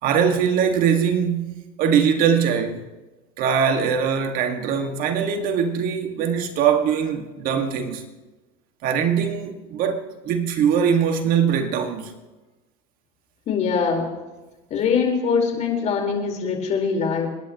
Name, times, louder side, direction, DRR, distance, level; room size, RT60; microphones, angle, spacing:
voice 1, 0.0-2.8 3.4-8.1 8.8-12.1, right 7 dB, 60° right, 1.9 m, -22 dB
voice 2, 13.5-14.1 14.7-17.3, left 5 dB, 45° left, 4.3 m, -22 dB
28.5 x 10.5 x 3.0 m
supercardioid pair, 105°, 16 cm